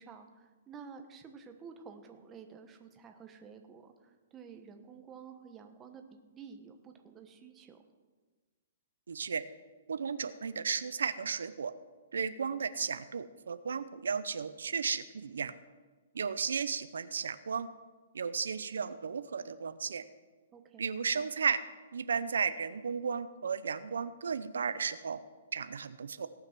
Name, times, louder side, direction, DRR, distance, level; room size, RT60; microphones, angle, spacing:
voice 1, 0.0-7.8 20.5-20.9, right 6 dB, 15° right, 5 dB, 1.2 m, -51 dB
voice 2, 9.1-9.4 9.9-11.7 12.1-15.5 16.1-17.7 18.1-20.0 20.8-21.6 21.9-25.2 25.5-26.3, right 6 dB, 90° right, 12 dB, 0.6 m, -34 dB
18.0 x 6.0 x 6.1 m, 1.3 s
hypercardioid pair, 150°, 0 cm